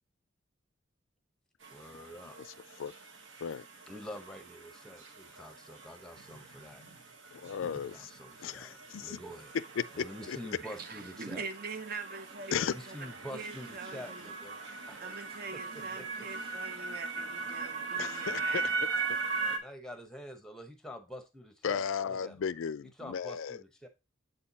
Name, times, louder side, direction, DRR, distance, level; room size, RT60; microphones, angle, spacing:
sound 1, 1.6-19.6, right 4 dB, 65° right, 1.2 m, -40 dB
voice 1, 1.7-2.4 3.9-6.8 7.8-9.5 9.9-11.4 12.7-14.6 14.9-15.1 15.5-16.3 19.3-22.4 23.0-23.9, equal, 5° left, 0.9 m, -47 dB
voice 2, 7.3-8.1 8.4-9.2 9.8-10.4 12.5-12.8 18.0-18.9 21.6-23.6, left 7 dB, 75° left, 0.4 m, -35 dB
voice 3, 10.6-14.2 15.0-18.8, right 4 dB, 45° right, 0.6 m, -43 dB
8.0 x 4.4 x 4.0 m
head